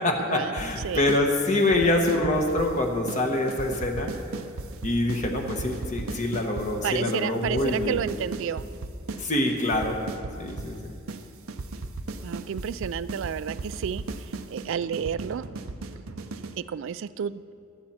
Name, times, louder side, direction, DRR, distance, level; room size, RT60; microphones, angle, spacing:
voice 1, 0.0-4.1 4.8-8.0 9.2-10.0 10.4-10.9, left 1 dB, 35° left, 2 dB, 1.0 m, -25 dB
sound 1, 0.6-1.2 1.5-2.8 3.1-3.2 3.5-6.7 7.1-7.2 7.5-9.2 9.5-10.8 11.1-11.2 11.5-16.6, right 3 dB, 80° right, 0.7 m, -36 dB
voice 2, 6.8-8.7 9.1-9.2 12.2-15.4 16.6-17.4, right 8 dB, 65° right, 15 dB, 0.3 m, -31 dB
15.5 x 12.0 x 4.3 m, 2.4 s
head